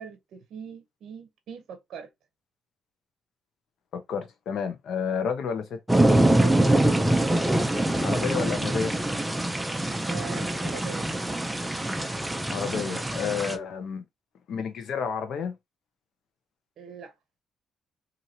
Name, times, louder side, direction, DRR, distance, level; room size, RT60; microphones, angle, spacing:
voice 1, 0.0-2.1 6.4-6.6 10.1-11.1 16.8-17.1, right 7 dB, 70° right, 0.7 m, -41 dB
voice 2, 3.9-5.8 8.0-9.0 12.5-14.0 14.5-15.5, left 6 dB, 70° left, 0.8 m, -30 dB
Hard Rain, 5.9-13.5, right 1 dB, 10° right, 0.5 m, -24 dB
2.8 x 2.7 x 2.7 m
cardioid pair, 90°, 0 cm